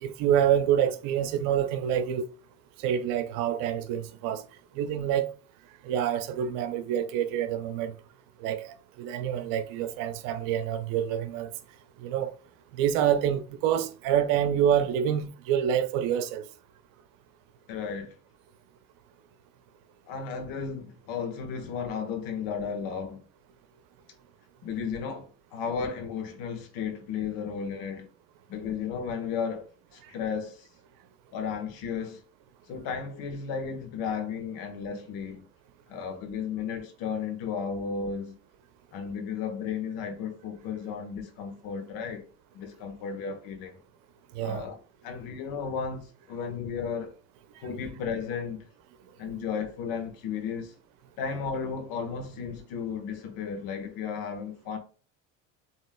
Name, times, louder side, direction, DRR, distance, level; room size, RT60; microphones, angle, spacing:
voice 1, 0.0-2.3 2.8-4.4 4.7-5.3 5.8-8.0 8.4-11.5 12.0-12.3 12.7-16.5 44.3-44.7, right 9 dB, 65° right, 0.7 m, -27 dB
voice 2, 17.7-18.2 20.1-23.2 24.6-28.1 28.5-30.7 31.3-32.2 32.7-35.5 35.9-38.3 38.9-42.3 42.5-43.8 44.4-44.8 45.0-47.1 47.6-48.7 49.2-50.7 51.2-54.8, left 6 dB, 70° left, 1.3 m, -34 dB
7.5 x 3.1 x 2.2 m
supercardioid pair, 110°, 35 cm